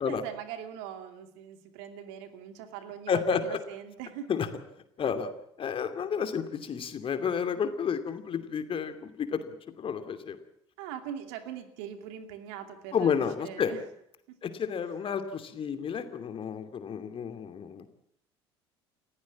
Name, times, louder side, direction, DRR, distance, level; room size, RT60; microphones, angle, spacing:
voice 1, 0.0-4.6 10.8-13.9 14.3-14.5 14.8-14.9, right 9 dB, 65° right, 8 dB, 2.5 m, -42 dB
voice 2, 3.1-3.6 4.3-4.5 5.0-5.3 5.6-10.4 12.9-13.7 14.4-17.9, left 7 dB, 40° left, 9 dB, 2.7 m, -31 dB
29.0 x 15.0 x 7.4 m, 0.73 s
figure-of-eight pair, 60°, 14 cm